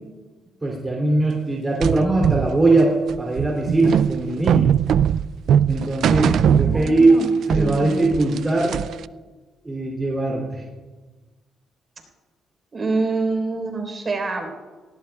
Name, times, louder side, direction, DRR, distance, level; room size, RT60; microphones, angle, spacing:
voice 1, 0.6-4.7 5.7-7.1 7.5-8.8 9.6-10.6, right 2 dB, 20° right, -2 dB, 2.8 m, -20 dB
sound 1, 1.8-7.2 7.5-9.0, right 8 dB, 70° right, 0.3 m, -20 dB
voice 2, 6.6-7.3 7.5-8.1 12.7-14.5, right 3 dB, 35° right, 3 dB, 3.9 m, -26 dB
18.5 x 18.0 x 2.3 m, 1.3 s
cardioid pair, 90°, 0 cm